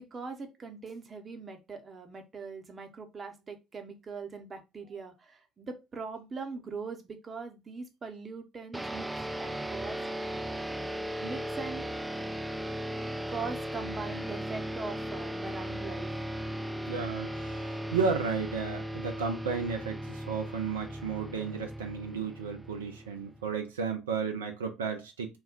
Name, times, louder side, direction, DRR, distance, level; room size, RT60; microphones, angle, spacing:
voice 1, 0.0-9.1 9.4-10.3 11.2-11.9 13.3-16.1, right 4 dB, 35° right, 0.8 m, -41 dB
sound 1, 8.7-23.5, right 1 dB, 10° right, 0.3 m, -37 dB
voice 2, 16.9-25.4, right 5 dB, 80° right, 0.4 m, -33 dB
2.3 x 2.1 x 3.6 m
figure-of-eight pair, 55°, 0 cm